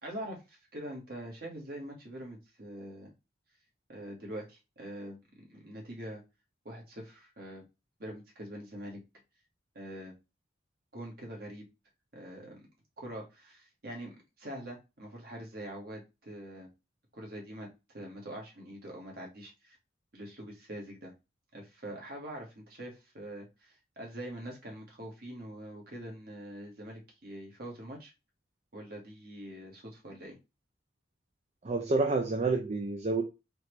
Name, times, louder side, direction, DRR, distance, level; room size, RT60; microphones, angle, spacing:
voice 1, 0.0-3.1 3.9-6.2 6.6-7.6 8.0-9.0 9.7-10.1 10.9-11.7 12.1-12.6 13.0-16.7 17.1-17.7 17.9-19.8 20.1-21.1 21.5-28.1 28.7-30.4, right 1 dB, 55° right, 1.7 m, -44 dB
voice 2, 31.6-33.2, right 3 dB, 35° right, 0.5 m, -28 dB
4.2 x 3.1 x 3.2 m
head